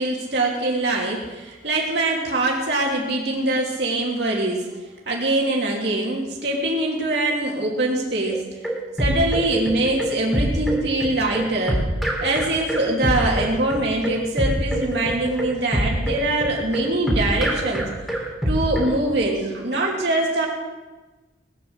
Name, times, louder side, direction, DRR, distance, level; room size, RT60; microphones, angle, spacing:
voice 1, 0.0-4.6 5.1-8.4 9.0-11.8 12.2-17.8 18.5-20.5, right 2 dB, 65° right, -2 dB, 3.1 m, -23 dB
sound 1, 8.3-18.9, equal, ahead, 3.6 m, -25 dB
20.0 x 9.7 x 7.3 m, 1.2 s
head